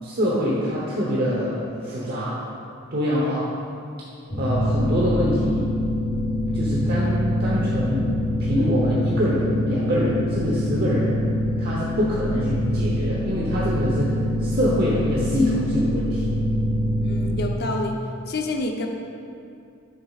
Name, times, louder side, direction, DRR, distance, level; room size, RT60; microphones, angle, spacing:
voice 1, 0.0-2.4 2.9-3.5 4.4-5.6 6.5-8.0 8.4-11.1 11.6-14.1 14.4-16.2, equal, 50° right, -6 dB, 1.0 m, -24 dB
sound 1, 4.3-17.3, equal, 35° left, 1.3 m, -24 dB
voice 2, 17.0-18.0 18.3-18.9, left 2 dB, 55° left, 2 dB, 0.7 m, -28 dB
11.5 x 6.8 x 2.5 m, 2.5 s
head